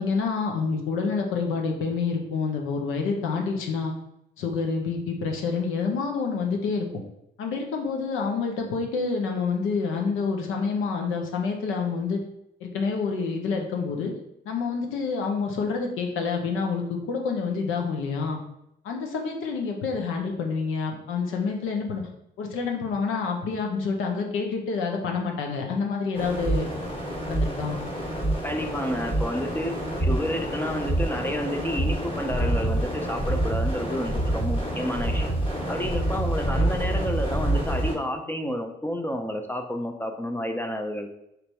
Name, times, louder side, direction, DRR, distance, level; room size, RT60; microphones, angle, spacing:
voice 1, 0.0-3.9 4.4-6.9 7.4-12.2 12.6-14.1 14.4-18.4 18.8-22.0 22.4-26.7 27.3-27.8, left 5 dB, 90° left, 2 dB, 0.8 m, -28 dB
sound 1, 26.1-37.9, right 1 dB, 30° left, 1.4 m, -27 dB
voice 2, 28.4-35.3 35.7-41.1, equal, 10° left, 5 dB, 0.4 m, -30 dB
3.4 x 2.6 x 4.5 m, 0.80 s
cardioid pair, 90°, 20 cm